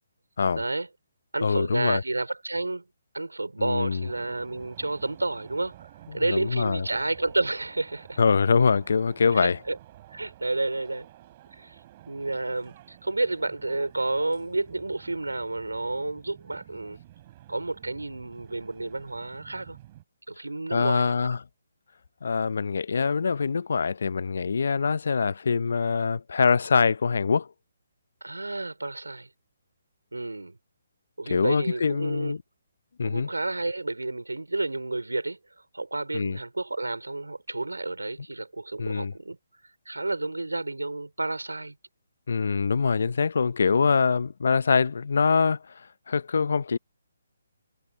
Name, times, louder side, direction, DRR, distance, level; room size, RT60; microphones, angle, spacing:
voice 1, 0.6-0.9 1.3-2.8 3.1-5.9 6.1-8.2 9.3-9.8 10.1-11.1 11.6-11.8 12.1-17.0 17.5-19.8 20.3-21.3 28.2-29.3 30.1-30.6 31.2-32.4 33.0-35.4 35.7-39.4 39.9-41.8, right 2 dB, 90° right, 4.1 m, -30 dB
voice 2, 1.4-2.0 3.6-4.1 6.1-6.9 8.2-9.6 20.7-21.4 22.2-27.5 31.3-32.4 33.0-33.3 36.1-36.4 38.8-39.1 42.3-46.8, left 5 dB, 65° left, 0.6 m, -24 dB
sound 1, 3.7-20.0, right 14 dB, 35° right, 2.8 m, -51 dB
figure-of-eight pair, 145°, 0 cm